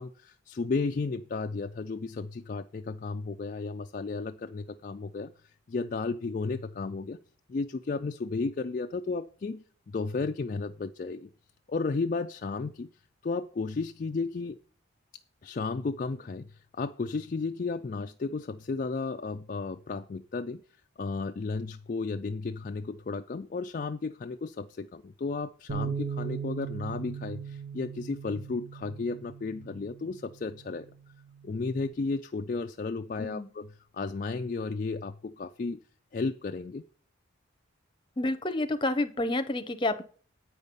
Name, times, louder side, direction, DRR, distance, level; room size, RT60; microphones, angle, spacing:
voice 1, 0.0-7.2 7.5-11.3 11.7-12.9 13.2-14.6 15.4-20.6 21.0-30.9 31.4-35.8 36.1-36.8, left 4 dB, 40° left, 6 dB, 0.3 m, -33 dB
Bass guitar, 25.7-31.9, right 6 dB, 65° right, 1.5 m, -39 dB
voice 2, 38.2-40.0, left 2 dB, 25° left, 10 dB, 0.7 m, -29 dB
9.0 x 5.3 x 6.8 m, 0.42 s
head